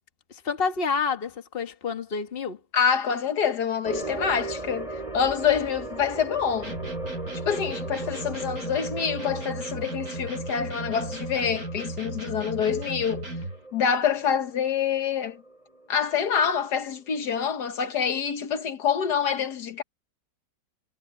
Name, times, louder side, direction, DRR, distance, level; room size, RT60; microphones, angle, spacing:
voice 1, 0.3-2.6, left 5 dB, 35° left, 1.6 m, -28 dB
voice 2, 2.7-4.9 5.1-6.7 7.5-13.3 13.7-15.4 15.9-19.8, left 7 dB, 70° left, 1.7 m, -26 dB
sound 1, 3.8-16.4 16.7-16.8 17.3-17.4, right 2 dB, 20° right, 4.9 m, -38 dB
sound 2, 6.6-13.6, right 2 dB, 60° right, 6.3 m, -36 dB
omnidirectional pair, 1.8 m